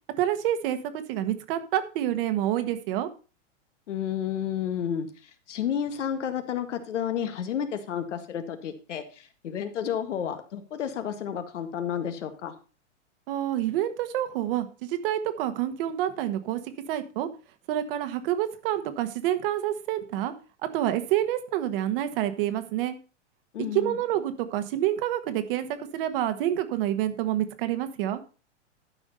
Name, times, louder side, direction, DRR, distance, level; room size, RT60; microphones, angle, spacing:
voice 1, 0.2-3.1 13.3-16.6 16.9-17.3 17.7-20.3 20.7-23.0 23.7-28.2, right 12 dB, 50° right, 9 dB, 1.5 m, -28 dB
voice 2, 3.9-12.5 23.5-24.0, left 9 dB, 80° left, 8 dB, 1.8 m, -31 dB
12.0 x 5.0 x 5.3 m, 0.35 s
hypercardioid pair, 135°, 36 cm